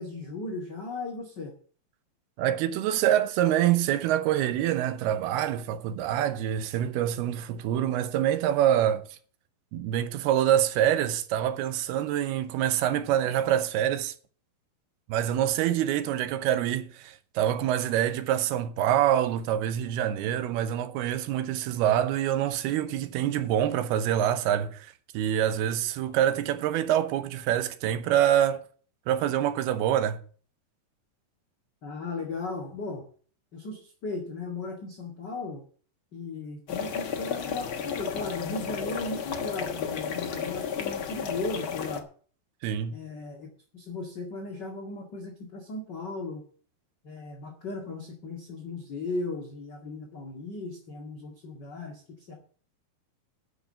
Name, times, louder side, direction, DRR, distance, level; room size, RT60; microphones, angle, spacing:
voice 1, 0.0-1.5 31.8-33.1 33.5-35.6 36.1-42.1 42.9-43.5 43.7-46.4 47.0-52.3, left 3 dB, 35° left, 1.9 m, -36 dB
voice 2, 2.4-9.0 9.7-14.1 15.1-28.6 29.1-30.2 42.6-43.0, right 11 dB, 80° right, 2.8 m, -26 dB
sound 1, 36.7-42.0, left 7 dB, 85° left, 1.1 m, -33 dB
10.0 x 6.7 x 8.9 m
omnidirectional pair, 4.5 m